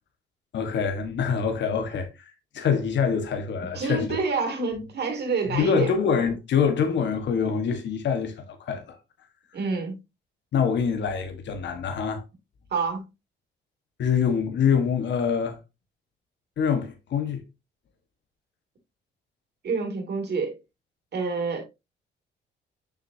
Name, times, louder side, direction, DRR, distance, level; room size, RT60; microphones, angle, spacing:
voice 1, 0.5-4.2 5.5-9.0 10.5-12.2 14.0-15.6 16.6-17.4, left 6 dB, 65° left, 1.5 m, -25 dB
voice 2, 3.6-5.9 9.5-10.0 12.7-13.0 19.6-20.6 21.1-21.6, right 4 dB, 55° right, 2.8 m, -28 dB
6.5 x 6.5 x 2.7 m
cardioid pair, 90°, 20 cm